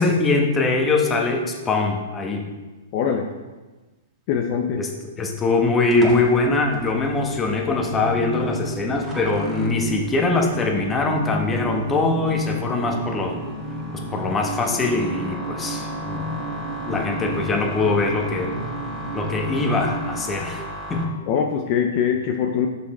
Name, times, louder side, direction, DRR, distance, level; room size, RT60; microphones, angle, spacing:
voice 1, 0.0-2.5 4.8-4.9 5.2-13.4 13.9-16.2 16.8-18.5 19.1-20.6 20.9-21.1, left 3 dB, 20° left, 2 dB, 1.2 m, -22 dB
voice 2, 2.9-3.3 4.3-4.8 16.9-17.0 21.3-22.7, left 7 dB, 45° left, 3 dB, 0.7 m, -22 dB
sound 1, 5.9-21.0, equal, 15° right, 1.8 m, -37 dB
sound 2, 7.6-20.2, right 1 dB, 75° right, 2.0 m, -32 dB
6.7 x 5.6 x 4.3 m, 1.2 s
hypercardioid pair, 125°, 0 cm